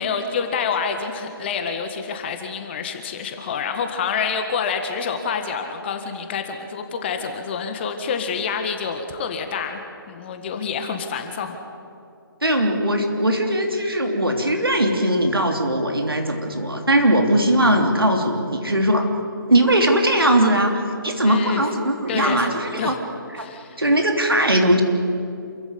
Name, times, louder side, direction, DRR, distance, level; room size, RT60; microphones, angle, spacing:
voice 1, 0.0-9.8 10.1-11.5 21.2-21.6 22.1-22.5 22.8-23.0 23.4-23.8, left 6 dB, 30° left, 6 dB, 1.7 m, -27 dB
voice 2, 12.4-19.1 19.5-23.0 23.3-23.4 23.8-24.8, right 1 dB, 80° right, 3 dB, 3.2 m, -19 dB
28.0 x 15.5 x 9.6 m, 2.5 s
figure-of-eight pair, 140°, 12 cm